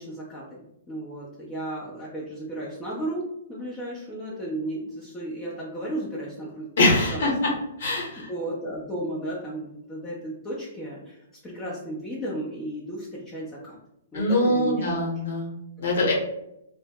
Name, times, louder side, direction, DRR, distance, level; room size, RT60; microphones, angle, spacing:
voice 1, 0.0-7.6 8.1-13.8 14.1-14.9 15.9-16.1, right 1 dB, 15° left, -6 dB, 0.6 m, -34 dB
voice 2, 6.8-7.5 7.8-8.3 14.1-16.1, left 1 dB, 65° left, -2 dB, 1.0 m, -23 dB
2.0 x 2.0 x 3.5 m, 0.81 s
hypercardioid pair, 125°, 0 cm